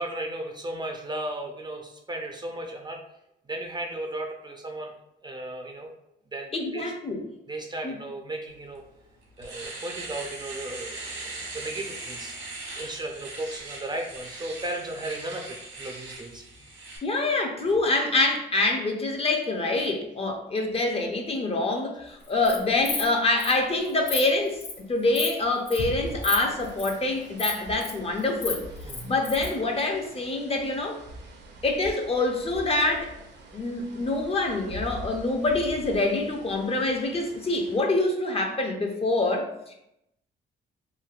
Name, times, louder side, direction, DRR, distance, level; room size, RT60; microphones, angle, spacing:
voice 1, 0.0-3.0 3.5-4.9 5.2-5.9 6.3-6.9 7.5-8.8 9.4-12.3 12.7-15.5 15.8-16.4 28.8-29.2, right 1 dB, 20° right, 2 dB, 0.4 m, -35 dB
voice 2, 6.5-7.2 7.8-8.0 17.0-24.6 24.9-28.7 29.0-31.0 31.6-33.1 33.5-39.7, left 2 dB, 30° left, 3 dB, 0.5 m, -26 dB
Domestic sounds home sounds, 8.7-8.8 9.2-17.0, right 2 dB, 80° right, 1.2 m, -39 dB
Insect, 22.2-22.6 22.8-23.1 23.4-23.5 23.8-24.2 24.6-24.8 25.1-25.3 25.7-25.8 26.2-26.4 26.6-26.9 27.4-27.9 28.2-29.5, left 5 dB, 60° left, 0.8 m, -31 dB
sound 1, 25.8-37.8, right 1 dB, 65° right, 0.6 m, -42 dB
3.1 x 2.6 x 2.4 m, 0.82 s
cardioid pair, 90°, 20 cm